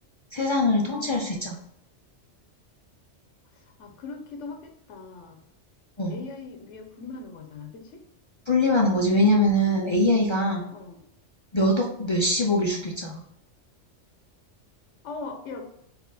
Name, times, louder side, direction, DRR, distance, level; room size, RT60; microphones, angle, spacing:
voice 1, 0.3-1.6 6.0-6.2 8.5-10.6 11.5-13.2, left 1 dB, 45° left, -1 dB, 0.3 m, -23 dB
voice 2, 3.5-5.4 6.1-8.0 10.7-11.1 15.0-15.7, left 4 dB, 90° left, 3 dB, 1.0 m, -40 dB
4.1 x 2.4 x 4.0 m, 0.73 s
omnidirectional pair, 1.2 m